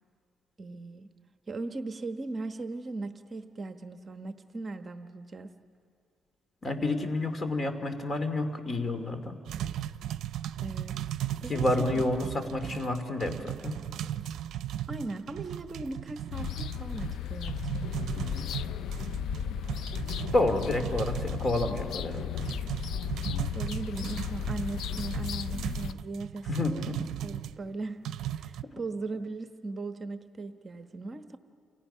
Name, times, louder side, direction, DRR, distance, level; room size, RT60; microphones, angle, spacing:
voice 1, 0.6-1.1 1.5-5.5 10.6-10.9 11.4-12.0 14.9-18.3 23.5-28.0 28.3-31.4, right 3 dB, 35° right, 7 dB, 1.1 m, -38 dB
voice 2, 6.6-9.4 11.5-13.8 20.3-22.4 26.5-27.0 28.6-28.7, left 2 dB, 35° left, 8 dB, 2.7 m, -29 dB
sound 1, 9.5-27.6 28.1-28.6, right 11 dB, 75° right, 0.6 m, -37 dB
sound 2, 16.3-25.9, left 9 dB, 75° left, 0.5 m, -35 dB
29.0 x 29.0 x 5.7 m, 2.3 s
cardioid pair, 90°, 0 cm